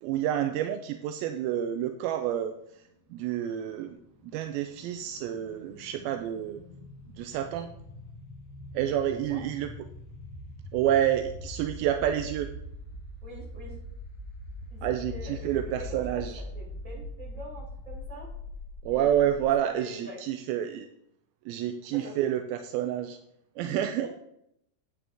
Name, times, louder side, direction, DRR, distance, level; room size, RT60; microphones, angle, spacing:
voice 1, 0.0-2.5 3.1-4.0 4.2-6.6 7.2-7.7 8.7-9.7 10.7-12.5 14.8-16.4 18.8-20.9 21.5-23.2 23.6-24.1, right 11 dB, 85° right, 7 dB, 2.1 m, -29 dB
sound 1, 3.7-19.6, left 1 dB, 65° left, 2.9 m, -42 dB
voice 2, 8.8-9.4 13.2-13.8 14.7-18.3 18.9-19.5 19.7-20.2 21.9-22.3 23.6-24.1, equal, 20° right, -5 dB, 4.3 m, -44 dB
10.0 x 8.7 x 3.5 m, 0.75 s
omnidirectional pair, 4.8 m